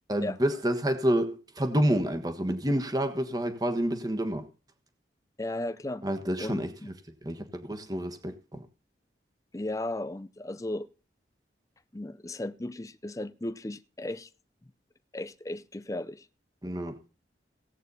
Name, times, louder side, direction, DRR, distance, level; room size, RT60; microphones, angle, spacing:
voice 1, 0.1-4.4 6.0-6.7 7.2-8.6 16.6-17.0, right 1 dB, 20° right, 1.3 m, -28 dB
voice 2, 5.4-6.0 6.4-6.9 9.5-10.9 11.9-14.3 15.1-16.3, left 1 dB, 20° left, 0.5 m, -35 dB
16.5 x 8.4 x 4.1 m
head